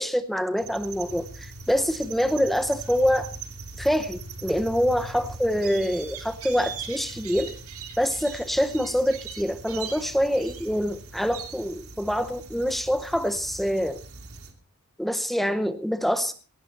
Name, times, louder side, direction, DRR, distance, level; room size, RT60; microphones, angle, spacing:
voice 1, 0.0-3.3 3.8-7.5 8.0-14.0 15.0-16.3, equal, ahead, 11 dB, 0.7 m, -25 dB
sound 1, 0.6-14.5, right 4 dB, 70° right, 2.7 m, -40 dB
18.0 x 15.0 x 4.1 m, 0.37 s
head